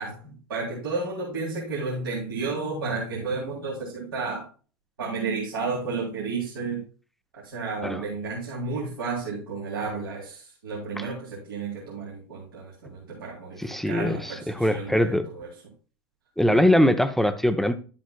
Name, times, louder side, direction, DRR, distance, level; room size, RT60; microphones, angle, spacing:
voice 1, 0.0-4.5 5.0-6.8 7.3-15.5 16.5-16.7, right 4 dB, 75° right, 3.2 m, -32 dB
voice 2, 13.6-15.3 16.4-17.7, left 1 dB, ahead, 0.7 m, -22 dB
11.0 x 7.5 x 2.3 m
figure-of-eight pair, 80°, 12 cm